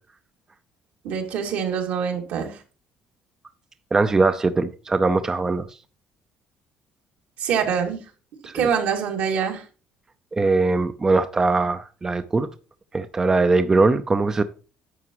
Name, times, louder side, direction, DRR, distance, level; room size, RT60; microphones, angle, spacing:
voice 1, 1.0-2.6 7.4-8.0 8.5-9.6, right 7 dB, 80° right, 2.3 m, -24 dB
voice 2, 3.9-5.7 8.5-8.7 10.3-12.5 12.9-14.4, right 3 dB, 20° right, 0.5 m, -21 dB
11.0 x 7.1 x 3.0 m
cardioid pair, 105°, 3 cm